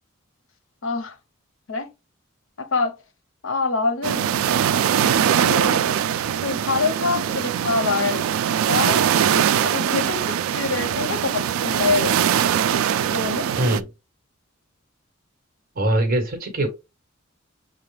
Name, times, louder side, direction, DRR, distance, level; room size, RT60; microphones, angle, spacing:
voice 1, 0.8-1.2 1.7-1.9 2.6-3.0 3.4-4.4 5.3-6.0 6.4-8.2 8.7-12.2 13.1-13.5, left 4 dB, 70° left, 0.8 m, -25 dB
sound 1, 4.0-13.8, right 9 dB, 85° right, 0.3 m, -22 dB
voice 2, 13.6-13.9 15.7-16.7, right 1 dB, 45° right, 1.3 m, -22 dB
6.9 x 2.4 x 3.2 m
head